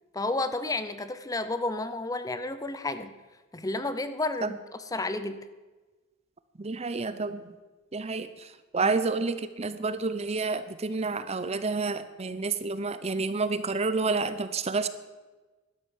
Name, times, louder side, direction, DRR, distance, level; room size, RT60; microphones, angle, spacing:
voice 1, 0.1-3.1 3.5-4.6 4.9-5.4 8.8-8.9, left 2 dB, 15° left, 11 dB, 0.6 m, -31 dB
voice 2, 6.6-7.5 7.9-14.9, right 4 dB, 30° right, 12 dB, 0.6 m, -29 dB
12.0 x 12.0 x 7.1 m, 1.2 s
head